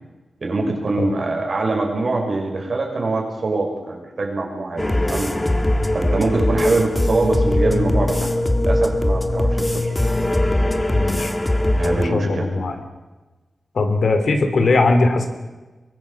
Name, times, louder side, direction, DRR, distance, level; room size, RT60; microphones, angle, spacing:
voice 1, 0.4-5.3 5.9-9.9 11.8-12.5 14.7-14.8, right 3 dB, 60° right, 1 dB, 6.2 m, -23 dB
sound 1, 4.8-12.1, left 1 dB, 20° left, 1.6 m, -20 dB
voice 2, 10.9-11.3 11.8-12.8 13.7-15.3, left 3 dB, 75° left, 6 dB, 3.2 m, -20 dB
23.0 x 19.5 x 7.3 m, 1.2 s
wide cardioid pair, 80°, 0 cm